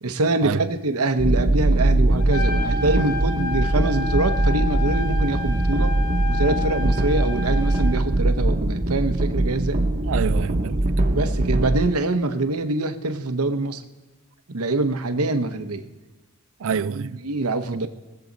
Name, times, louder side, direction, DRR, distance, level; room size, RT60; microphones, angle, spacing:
voice 1, 0.0-6.0 6.2-9.8 11.1-13.8 14.5-15.9 17.0-17.9, right 2 dB, 85° right, 1.0 m, -24 dB
sound 1, 1.2-11.8, right 2 dB, 40° right, 1.0 m, -21 dB
Trumpet, 2.2-8.0, left 5 dB, 85° left, 2.1 m, -31 dB
sound 2, 4.7-12.0, right 1 dB, 15° right, 0.6 m, -39 dB
voice 2, 10.0-11.0 16.6-17.2 17.7-17.9, right 6 dB, 60° right, 0.4 m, -27 dB
21.5 x 7.8 x 4.0 m
head